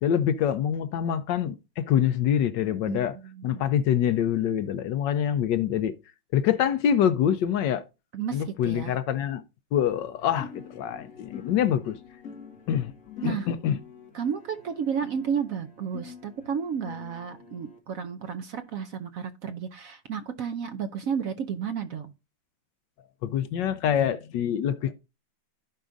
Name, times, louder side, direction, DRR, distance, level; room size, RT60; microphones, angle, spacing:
voice 1, 0.0-3.2 3.4-5.9 6.3-7.8 8.3-9.4 9.7-12.0 12.7-13.8 23.2-24.9, left 9 dB, 75° left, 1.2 m, -25 dB
voice 2, 2.9-3.6 8.1-8.9 13.2-13.5 14.1-22.1, right 7 dB, 70° right, 0.8 m, -32 dB
sound 1, 10.4-17.8, left 5 dB, 45° left, 2.2 m, -46 dB
14.5 x 5.0 x 2.6 m
omnidirectional pair, 2.1 m